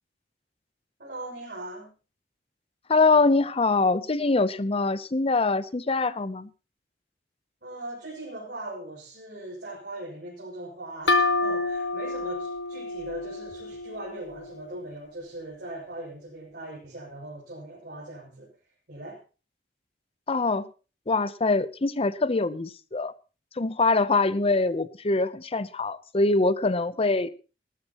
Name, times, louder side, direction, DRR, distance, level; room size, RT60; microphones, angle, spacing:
voice 1, 1.0-1.9 7.6-18.5 18.9-19.2, right 1 dB, 65° right, -5 dB, 6.6 m, -40 dB
voice 2, 2.9-6.5 20.3-20.7 21.1-23.1 23.6-27.3, left 3 dB, 35° left, 15 dB, 0.7 m, -24 dB
sound 1, 11.1-14.6, left 3 dB, 85° left, 1.8 m, -28 dB
19.0 x 13.5 x 3.0 m, 0.34 s
head